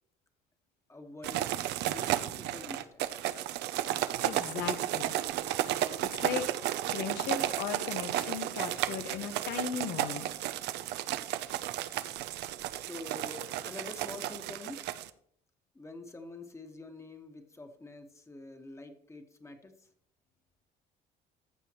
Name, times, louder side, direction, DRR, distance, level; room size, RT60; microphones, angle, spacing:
voice 1, 0.9-1.5 1.8-3.0 12.7-14.8 15.7-19.7, left 2 dB, 15° left, 5 dB, 1.3 m, -46 dB
sound 1, 1.2-15.1, right 13 dB, 80° right, 0.5 m, -33 dB
voice 2, 4.2-5.1 6.0-6.5 6.9-10.3, left 7 dB, 90° left, 7 dB, 1.3 m, -37 dB
14.5 x 6.8 x 3.0 m, 0.64 s
cardioid pair, 110°, 17 cm